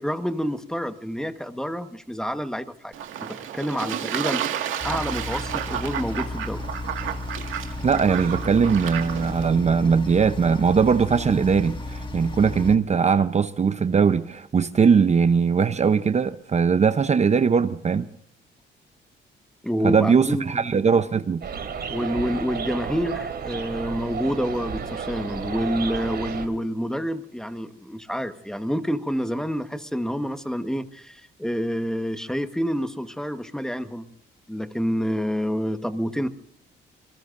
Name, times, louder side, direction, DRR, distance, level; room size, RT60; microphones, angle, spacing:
voice 1, 0.0-2.9 3.2-4.4 4.8-6.6 19.6-20.7 21.9-34.1 34.5-36.3, equal, 5° left, 1.3 m, -28 dB
Fowl / Bird / Water, 2.9-9.5, right 10 dB, 80° right, 2.0 m, -31 dB
sound 1, 4.8-12.8, left 2 dB, 25° left, 1.8 m, -34 dB
voice 2, 7.8-18.1 19.8-21.4, right 6 dB, 35° right, 0.8 m, -20 dB
sound 2, 21.4-26.5, right 6 dB, 55° right, 3.1 m, -32 dB
26.5 x 20.0 x 2.6 m
cardioid pair, 90°, 20 cm